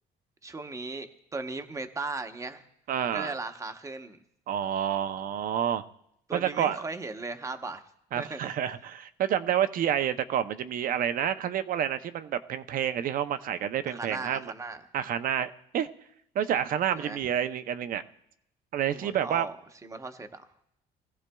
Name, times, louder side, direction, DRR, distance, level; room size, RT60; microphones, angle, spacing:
voice 1, 0.4-2.6 3.1-4.2 6.3-7.8 8.1-8.6 13.9-14.8 16.9-17.2 18.9-19.5 19.8-20.4, right 3 dB, 20° right, 7 dB, 0.9 m, -37 dB
voice 2, 2.9-3.3 4.5-5.8 6.3-6.8 8.1-14.5 14.9-15.9 16.3-18.0 18.7-19.5, right 9 dB, 55° right, 11 dB, 0.6 m, -29 dB
20.5 x 15.0 x 2.3 m, 0.75 s
cardioid pair, 110°, 17 cm